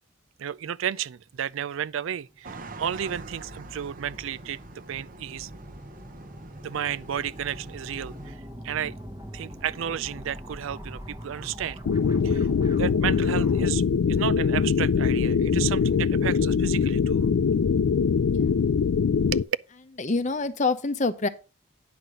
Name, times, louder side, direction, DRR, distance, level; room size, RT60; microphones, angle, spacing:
voice 1, 0.4-5.5 6.6-8.9 9.3-11.8 12.2-12.5 12.8-13.8 14.1-17.3 19.3-19.6, right 9 dB, 70° right, 0.4 m, -32 dB
sound 1, 1.2-13.7, equal, 20° right, 1.0 m, -43 dB
sound 2, 2.4-8.3, right 2 dB, 40° right, 0.8 m, -44 dB
sound 3, 11.8-19.4, left 6 dB, 75° left, 0.4 m, -23 dB
voice 2, 20.0-21.3, left 3 dB, 35° left, 0.7 m, -26 dB
9.6 x 5.9 x 5.0 m
head